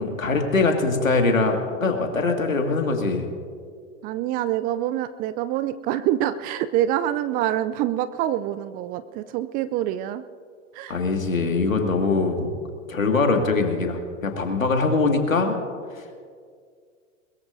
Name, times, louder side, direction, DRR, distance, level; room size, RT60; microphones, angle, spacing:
voice 1, 0.0-3.3 10.9-12.5 12.9-15.6 15.9-16.2, left 3 dB, 85° left, 3 dB, 2.1 m, -22 dB
voice 2, 4.0-10.2 10.8-10.9, right 12 dB, 25° right, 14 dB, 0.3 m, -26 dB
22.0 x 21.5 x 2.6 m, 2.1 s
figure-of-eight pair, 95°, 39 cm